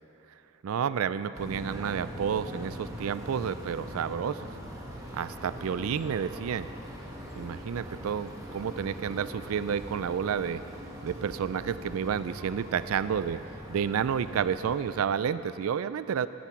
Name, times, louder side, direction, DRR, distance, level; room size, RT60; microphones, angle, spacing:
voice 1, 0.6-4.5 5.1-6.7 7.4-10.6 11.0-13.4 13.7-16.3, right 7 dB, 85° right, 14 dB, 0.4 m, -30 dB
sound 1, 1.3-15.0, equal, 15° right, 1.7 m, -42 dB
15.5 x 10.5 x 6.0 m, 2.9 s
head